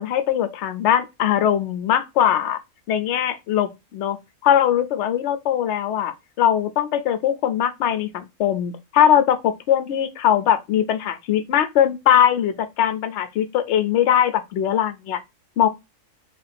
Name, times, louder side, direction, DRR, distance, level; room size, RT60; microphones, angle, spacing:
voice 1, 0.0-2.6 2.9-4.2 4.4-15.2 15.6-15.7, left 10 dB, 60° left, 0.8 m, -21 dB
3.7 x 2.8 x 4.1 m
omnidirectional pair, 1.5 m